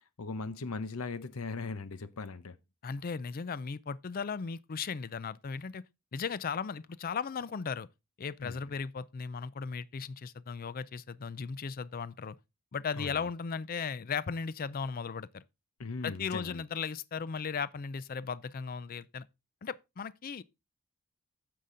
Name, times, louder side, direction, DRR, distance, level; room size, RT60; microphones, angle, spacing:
voice 1, 0.2-2.6 8.4-8.6 13.0-13.2 15.8-16.6, left 4 dB, 75° left, 0.8 m, -39 dB
voice 2, 2.8-5.8 6.1-7.9 8.2-12.4 12.7-15.4 16.0-19.3 19.6-20.4, left 5 dB, 40° left, 0.4 m, -36 dB
9.7 x 6.7 x 3.8 m
head